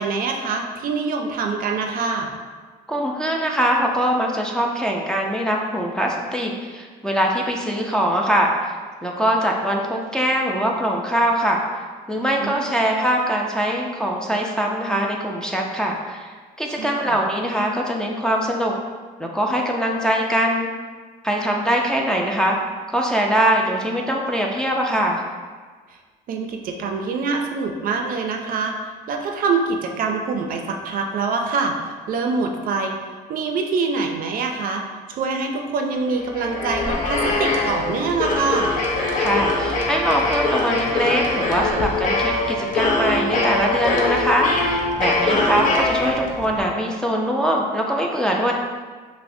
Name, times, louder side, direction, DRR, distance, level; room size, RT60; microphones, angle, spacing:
voice 1, 0.0-2.3 12.4-12.8 16.7-17.2 25.9-26.0 26.3-28.8 29.1-33.0 33.3-38.7 45.2-45.6, right 4 dB, 55° right, 3 dB, 0.5 m, -25 dB
voice 2, 2.9-8.7 9.0-11.6 12.1-18.7 19.2-20.7 21.2-22.6 22.9-25.2 39.2-48.5, equal, 5° left, -1 dB, 0.4 m, -22 dB
sound 1, 36.1-46.6, left 2 dB, 50° left, 0.6 m, -22 dB
5.6 x 2.1 x 2.6 m, 1.5 s
cardioid pair, 110°, 17 cm